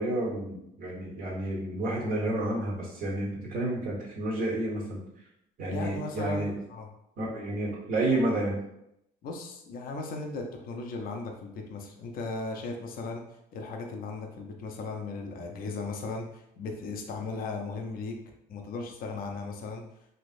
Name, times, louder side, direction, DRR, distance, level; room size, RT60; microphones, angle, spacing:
voice 1, 0.0-5.0 5.6-6.5 7.2-8.6, right 1 dB, 55° right, -4 dB, 1.3 m, -30 dB
voice 2, 5.7-6.9 9.2-13.2 13.5-18.2 18.5-19.8, left 3 dB, 60° left, 2 dB, 0.6 m, -37 dB
3.2 x 2.9 x 2.6 m, 0.80 s
cardioid pair, 110°, 17 cm